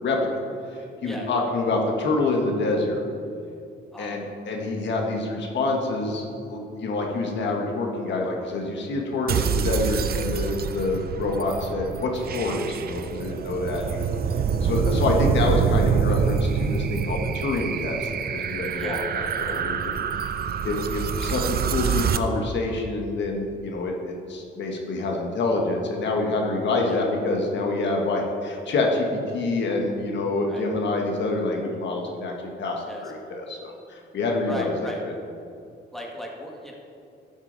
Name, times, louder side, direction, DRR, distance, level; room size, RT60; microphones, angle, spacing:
voice 1, 0.7-3.0 4.0-14.1 14.6-19.8 20.6-32.3 32.6-35.1, left 2 dB, 65° left, 0 dB, 1.6 m, -27 dB
sound 1, 9.3-22.2, right 7 dB, 50° right, 0.6 m, -26 dB
voice 2, 34.5-35.0 35.9-36.7, equal, ahead, -2 dB, 1.8 m, -37 dB
12.0 x 7.3 x 4.0 m, 2.6 s
cardioid pair, 90°, 20 cm